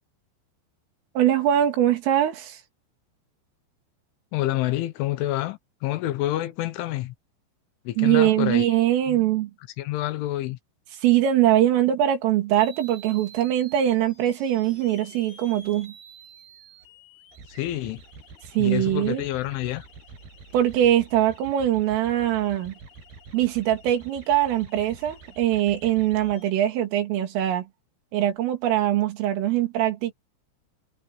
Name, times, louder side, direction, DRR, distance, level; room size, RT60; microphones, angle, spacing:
voice 1, 1.2-2.6 8.0-9.5 11.0-15.9 18.6-19.2 20.5-22.7 23.3-27.7 28.1-30.1, right 12 dB, 80° right, 5.4 m, -22 dB
voice 2, 4.3-7.2 7.9-8.7 9.1-9.2 9.8-10.6 17.5-18.0 18.6-19.9, left 15 dB, 75° left, 3.5 m, -28 dB
sound 1, 12.6-26.5, right 3 dB, 50° right, 9.4 m, -47 dB
omnidirectional pair, 5.8 m